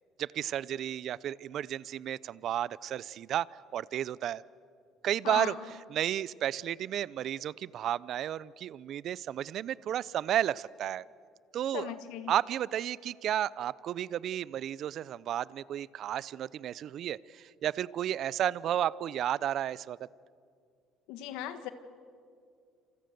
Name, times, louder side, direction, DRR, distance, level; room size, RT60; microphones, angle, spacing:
voice 1, 0.2-3.5 3.7-4.4 5.0-5.5 5.9-11.0 11.5-11.9 12.3-20.0, right 11 dB, 60° right, 21 dB, 0.6 m, -32 dB
voice 2, 5.2-5.6 11.7-12.3 21.1-21.7, left 12 dB, 80° left, 10 dB, 1.8 m, -37 dB
28.0 x 27.5 x 6.9 m, 2.3 s
supercardioid pair, 85°, 0 cm